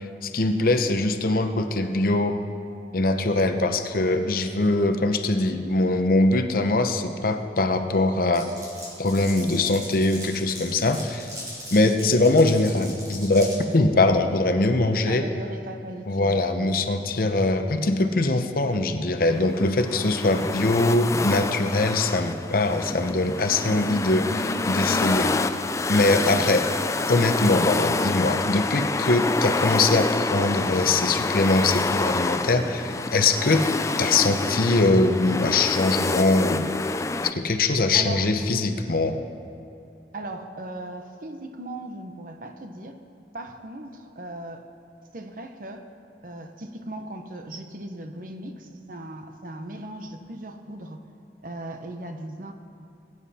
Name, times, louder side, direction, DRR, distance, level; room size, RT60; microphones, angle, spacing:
voice 1, 0.0-2.4 2.9-8.5 9.0-11.3 11.7-15.3 16.1-24.2 24.7-25.3 25.9-26.6 27.1-33.7 34.0-36.7 37.3-39.1, left 2 dB, 55° left, 7 dB, 0.8 m, -22 dB
voice 2, 3.4-3.8 11.8-12.2 15.1-16.9 23.6-24.1 37.9-38.3 38.7-38.9 40.1-43.0 43.3-44.7 45.1-45.8 46.2-51.1 51.4-52.5, right 1 dB, 50° right, 6 dB, 0.9 m, -38 dB
Glass, 8.3-13.6, equal, 20° right, 3.5 m, -39 dB
sound 1, 19.3-37.3, left 3 dB, 15° left, 0.3 m, -27 dB
21.0 x 9.4 x 4.3 m, 2.6 s
head